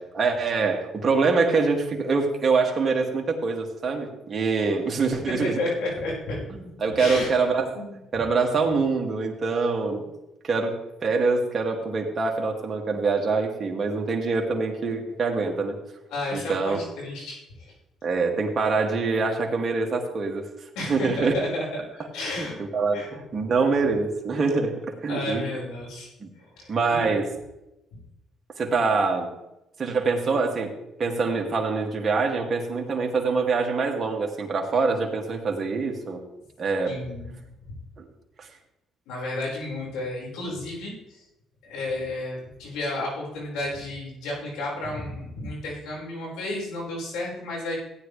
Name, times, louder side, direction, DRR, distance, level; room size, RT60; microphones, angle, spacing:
voice 1, 0.1-5.6 6.8-7.7 8.1-10.0 10.4-15.8 16.3-16.8 18.0-20.5 20.8-21.3 22.4-25.4 26.2-26.3 26.7-27.3 28.6-29.3 29.8-30.7 31.0-36.2 36.6-37.0 38.0-38.1 38.4-38.5, right 4 dB, 40° right, 1 dB, 2.4 m, -25 dB
voice 2, 5.4-6.4 6.9-7.3 7.7-8.0 16.1-17.7 20.8-21.7 21.9-22.6 22.9-23.1 25.1-26.1 26.4-27.0 36.8-37.3 39.1-41.2 41.6-47.8, left 2 dB, 90° left, -3 dB, 5.3 m, -32 dB
15.5 x 9.9 x 3.4 m, 0.91 s
cardioid pair, 95°, 0 cm